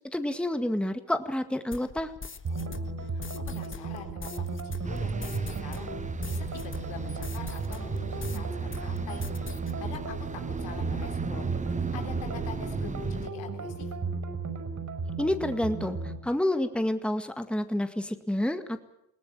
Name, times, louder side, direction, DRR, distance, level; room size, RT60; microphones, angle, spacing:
voice 1, 0.0-2.1 15.2-18.8, left 1 dB, ahead, 8 dB, 1.9 m, -29 dB
sound 1, 1.7-8.4 8.7-9.7, left 5 dB, 25° left, 1.5 m, -43 dB
sound 2, 2.4-16.2, right 4 dB, 40° right, 5.8 m, -35 dB
voice 2, 2.5-13.9, left 8 dB, 75° left, 5 dB, 3.8 m, -45 dB
sound 3, 4.8-13.3, right 4 dB, 15° right, 0.8 m, -36 dB
21.5 x 18.5 x 8.6 m, 0.79 s
hypercardioid pair, 60°, 45 cm